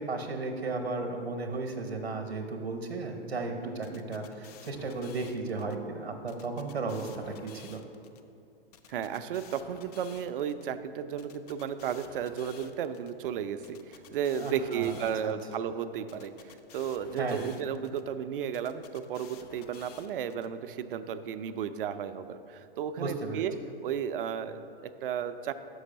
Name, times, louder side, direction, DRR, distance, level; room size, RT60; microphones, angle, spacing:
voice 1, 0.0-7.8 14.4-14.9 15.2-15.3 17.2-17.5 23.0-23.4, right 3 dB, 90° right, 5 dB, 0.8 m, -35 dB
voice 2, 3.6-4.1 8.9-23.5 23.8-25.5, right 8 dB, 60° right, 11 dB, 0.5 m, -34 dB
sound 1, 3.8-5.7 6.3-8.2 8.7-10.6 11.2-13.1 13.6-15.6 16.1-18.0 18.5-20.5, left 8 dB, 40° left, 0.5 m, -53 dB
6.4 x 5.4 x 5.1 m, 2.7 s
hypercardioid pair, 115°, 31 cm